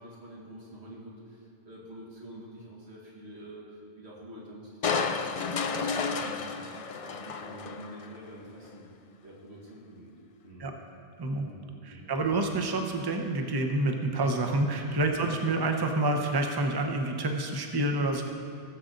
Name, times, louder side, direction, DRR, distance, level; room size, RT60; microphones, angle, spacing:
voice 1, 0.0-5.2 5.6-8.9 9.2-10.1 10.4-10.7 11.3-12.1 15.1-15.4, right 1 dB, 65° right, -4 dB, 2.2 m, -47 dB
Crushing, 4.8-8.2 8.6-8.7, left 5 dB, 55° left, 0.4 m, -31 dB
voice 2, 11.9-18.2, right 2 dB, 25° right, 3 dB, 0.8 m, -28 dB
17.0 x 7.5 x 3.9 m, 2.3 s
omnidirectional pair, 1.2 m